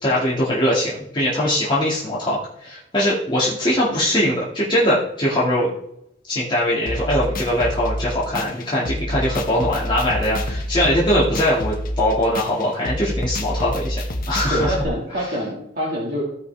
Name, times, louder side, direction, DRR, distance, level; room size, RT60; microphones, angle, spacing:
voice 1, 0.0-5.7 6.3-14.0 14.3-14.8 15.2-15.3, left 1 dB, 25° left, -7 dB, 2.1 m, -21 dB
sound 1, 6.9-14.8, left 1 dB, 50° left, 1.3 m, -28 dB
voice 2, 14.5-16.2, equal, 50° right, -5 dB, 2.1 m, -25 dB
16.5 x 5.5 x 3.5 m, 0.80 s
head